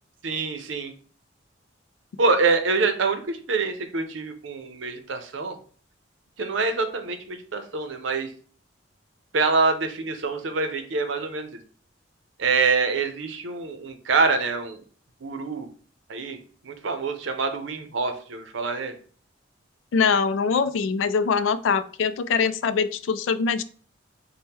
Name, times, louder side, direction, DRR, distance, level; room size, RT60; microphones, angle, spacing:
voice 1, 0.2-0.9 2.2-5.6 6.4-8.3 9.3-11.6 12.4-14.8 15.2-15.7 16.1-16.4 16.6-18.9, right 4 dB, 80° right, 8 dB, 0.6 m, -25 dB
voice 2, 19.9-23.6, left 5 dB, 85° left, 12 dB, 0.3 m, -23 dB
4.2 x 2.1 x 3.5 m, 0.43 s
head